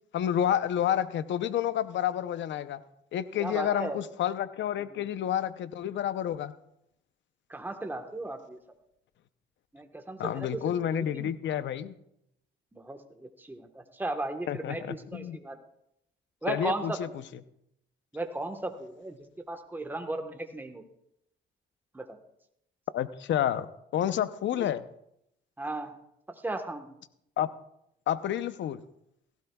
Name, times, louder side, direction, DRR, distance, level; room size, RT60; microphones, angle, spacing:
voice 1, 0.1-2.8 3.1-6.5 10.2-11.9 14.5-15.4 16.5-17.1 22.9-24.8 27.4-27.5 28.1-28.8, left 10 dB, 70° left, 13 dB, 0.7 m, -29 dB
voice 2, 3.4-4.0 4.9-5.0 7.5-8.6 9.7-11.3 12.7-15.6 16.4-17.0 18.1-19.2 19.5-20.8 21.9-22.2 24.6-24.7 25.6-26.0 26.4-26.9, right 2 dB, 10° right, 5 dB, 1.3 m, -36 dB
17.0 x 15.5 x 2.3 m, 0.78 s
cardioid pair, 90°, 20 cm